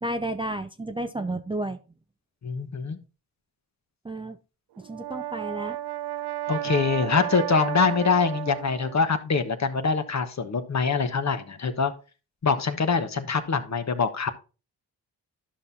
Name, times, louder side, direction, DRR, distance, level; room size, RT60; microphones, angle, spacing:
voice 1, 0.0-1.8 4.0-4.4 4.8-5.8, right 1 dB, 15° right, 0.5 m, -31 dB
voice 2, 2.4-3.0 6.5-11.9 12.4-14.3, left 5 dB, 40° left, 1.1 m, -24 dB
Brass instrument, 4.8-9.0, right 14 dB, 70° right, 0.5 m, -33 dB
11.5 x 5.6 x 2.7 m
supercardioid pair, 45°, 40 cm